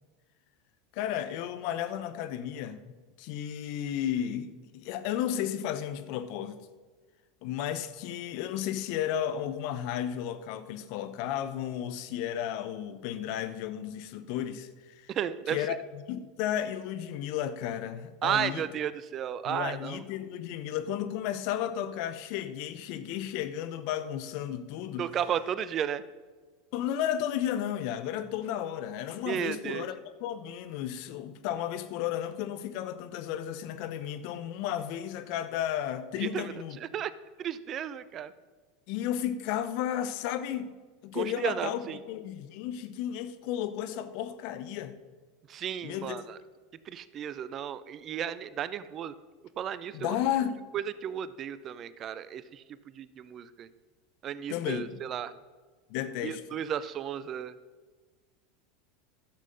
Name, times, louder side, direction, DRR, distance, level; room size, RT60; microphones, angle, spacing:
voice 1, 0.9-6.6 7.4-15.1 15.5-18.6 19.4-25.1 26.7-36.8 38.9-40.7 41.0-44.9 45.8-46.2 49.9-50.6 54.5-55.0 55.9-56.6, left 10 dB, 60° left, 0.8 m, -33 dB
voice 2, 15.1-15.6 18.2-20.0 25.0-26.0 29.2-29.9 36.2-37.1 37.4-38.3 41.1-42.0 45.5-46.4 46.9-49.1 49.6-50.2 50.7-53.7 54.2-55.3 56.2-57.5, right 9 dB, 40° right, 0.6 m, -34 dB
11.5 x 7.4 x 5.4 m
hypercardioid pair, 85°, 0 cm